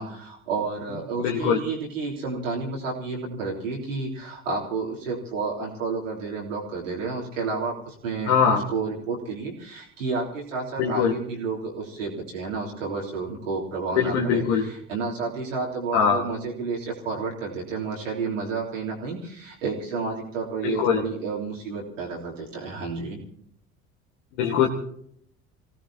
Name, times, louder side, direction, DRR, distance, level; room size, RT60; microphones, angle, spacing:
voice 1, 0.0-23.2, right 4 dB, 75° right, -4 dB, 3.6 m, -31 dB
voice 2, 1.2-1.6 8.3-8.6 10.8-11.1 14.0-14.7 15.9-16.2 20.6-21.0 24.4-24.7, left 7 dB, 60° left, -1 dB, 1.8 m, -21 dB
27.5 x 17.0 x 2.9 m, 0.68 s
figure-of-eight pair, 60°, 39 cm